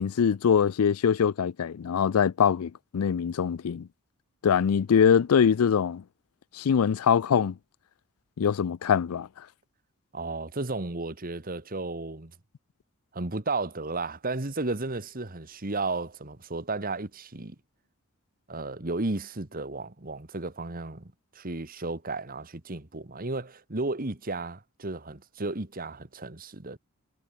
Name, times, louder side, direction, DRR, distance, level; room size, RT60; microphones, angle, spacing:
voice 1, 0.0-3.9 4.4-6.0 6.5-7.5 8.4-9.3, left 7 dB, 85° left, 0.4 m, -23 dB
voice 2, 10.1-12.3 13.1-17.5 18.5-26.8, right 2 dB, 40° right, 1.7 m, -33 dB
head